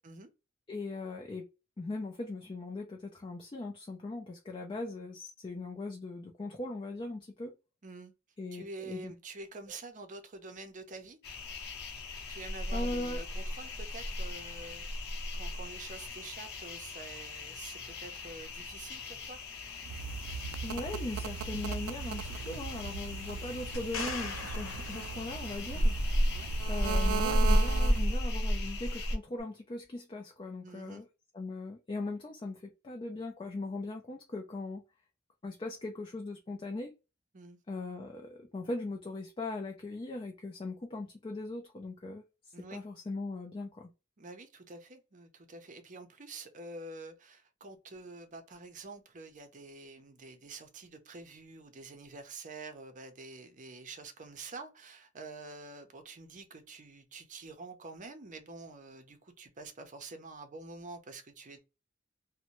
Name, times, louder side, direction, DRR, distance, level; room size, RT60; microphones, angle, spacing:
voice 1, 0.7-1.5 1.8-7.5 8.4-9.1 9.7-9.8 12.7-13.2 20.6-25.9 26.7-31.1 31.3-34.8 35.4-36.9 37.7-42.2 42.7-43.9, left 2 dB, 25° left, 0.4 m, -39 dB
voice 2, 7.8-8.1 8.5-11.2 12.3-14.9 15.3-19.4 25.7-26.0 26.3-26.5 30.6-31.0 37.3-37.6 42.5-42.8 44.2-61.6, right 3 dB, 40° right, 0.6 m, -47 dB
sound 1, 11.2-29.2, equal, 55° left, 0.8 m, -34 dB
sound 2, 19.9-28.2, right 6 dB, 85° right, 0.3 m, -38 dB
sound 3, 23.7-25.7 29.4-29.5, left 4 dB, 85° left, 0.9 m, -41 dB
2.6 x 2.1 x 2.9 m
head